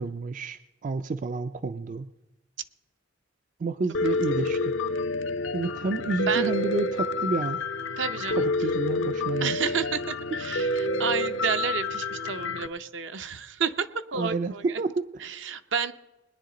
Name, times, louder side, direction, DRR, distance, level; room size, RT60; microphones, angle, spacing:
voice 1, 0.0-2.1 3.6-4.8 5.5-7.6 8.3-9.6 14.1-15.3, right 3 dB, 40° right, 11 dB, 0.4 m, -30 dB
Piano, 3.9-12.7, left 2 dB, 75° left, 0.6 m, -28 dB
voice 2, 8.0-8.4 9.4-14.6 15.2-15.9, right 6 dB, 70° right, 10 dB, 0.7 m, -30 dB
21.0 x 10.5 x 3.8 m, 1.0 s
head